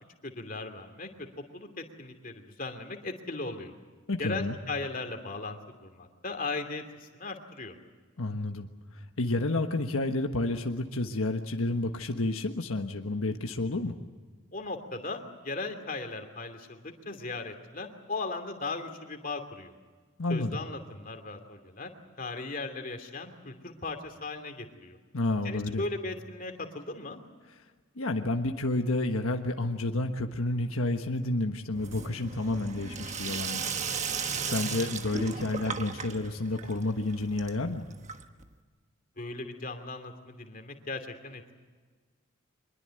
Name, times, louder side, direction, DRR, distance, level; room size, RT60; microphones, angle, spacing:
voice 1, 0.2-1.1 1.5-3.7 4.2-7.8 14.5-19.8 20.3-21.9 22.2-25.0 25.4-27.2 39.2-41.6, left 3 dB, 40° left, 5 dB, 2.7 m, -37 dB
voice 2, 4.1-4.6 8.2-13.9 20.2-20.6 25.1-25.8 27.9-33.6 34.4-37.8, left 2 dB, 85° left, 4 dB, 1.4 m, -30 dB
Sink (filling or washing), 31.7-38.5, right 5 dB, 35° right, 1.3 m, -36 dB
24.5 x 21.5 x 7.8 m, 1.4 s
head